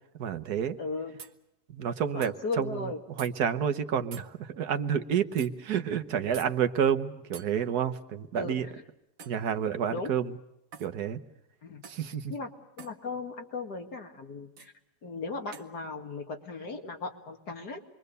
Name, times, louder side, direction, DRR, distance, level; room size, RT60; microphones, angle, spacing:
voice 1, 0.2-0.8 1.7-2.9 3.2-8.7 9.3-10.3 10.8-11.2 11.9-12.3, right 8 dB, 75° right, 9 dB, 1.6 m, -29 dB
voice 2, 0.8-1.1 2.1-3.0 8.3-8.6 9.9-10.1 11.6-11.8 12.3-12.5 12.8-14.7 15.0-17.8, left 3 dB, 85° left, 3 dB, 2.8 m, -36 dB
sound 1, 1.2-1.4 2.2-2.3 3.2-3.3 4.1-4.3 5.4-5.5 6.3-6.5 7.3-7.5 9.2-9.4 10.7-10.9 11.8-12.1 12.8-13.0 14.6-14.7 15.5-15.7, right 6 dB, 60° right, 1.6 m, -46 dB
27.5 x 22.5 x 6.8 m, 0.85 s
omnidirectional pair, 1.7 m